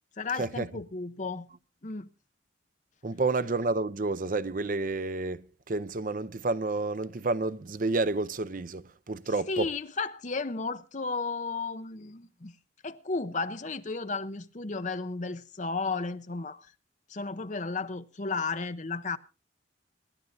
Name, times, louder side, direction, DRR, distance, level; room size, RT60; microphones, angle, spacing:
voice 1, 0.2-1.5 1.8-2.1 9.5-12.6 12.8-16.7 17.1-19.2, left 4 dB, 40° left, 0.7 m, -33 dB
voice 2, 3.0-9.7, right 3 dB, 45° right, 0.6 m, -30 dB
26.5 x 12.0 x 2.6 m
head